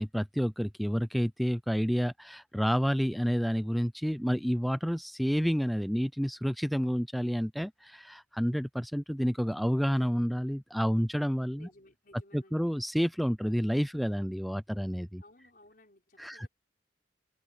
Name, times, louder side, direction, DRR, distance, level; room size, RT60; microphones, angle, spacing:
voice 1, 0.0-11.7 12.3-15.2 16.2-16.5, equal, ahead, 0.3 m, -29 dB
voice 2, 11.5-12.7 15.2-16.5, left 1 dB, 50° left, 5.2 m, -58 dB
open air
head